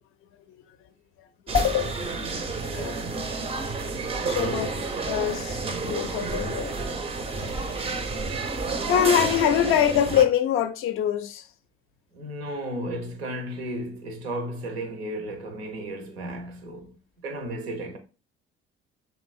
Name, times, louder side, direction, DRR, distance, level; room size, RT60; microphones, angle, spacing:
voice 1, 1.5-2.3 2.7-3.0 4.3-4.7 5.1-6.7 7.4-7.5 8.9-11.5, left 10 dB, 45° left, 0.4 m, -24 dB
sound 1, 1.5-10.2, right 3 dB, 20° right, 0.4 m, -30 dB
voice 2, 4.0-4.7 12.1-16.9 17.2-18.0, right 1 dB, 85° right, 0.6 m, -34 dB
3.0 x 2.5 x 2.3 m
figure-of-eight pair, 50°, 31 cm